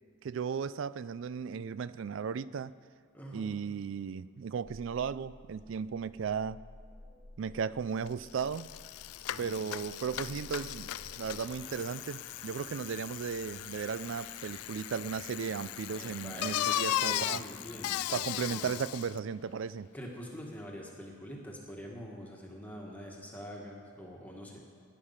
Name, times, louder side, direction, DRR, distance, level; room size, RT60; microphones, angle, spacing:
voice 1, 0.2-2.7 3.3-6.6 7.4-8.7 9.4-10.9 11.2-17.4 18.1-19.9, right 6 dB, 60° right, 18 dB, 0.3 m, -35 dB
voice 2, 3.1-3.6 9.3-9.7 15.9-18.7 19.9-24.6, equal, 5° left, -2 dB, 1.5 m, -45 dB
sound 1, 4.6-11.7, left 1 dB, 50° left, 1.3 m, -54 dB
Bicycle, 8.1-8.2 8.4-19.2, left 12 dB, 90° left, 0.3 m, -37 dB
sound 2, 9.9-18.3, right 1 dB, 90° right, 2.1 m, -57 dB
17.5 x 10.5 x 5.6 m, 2.3 s
head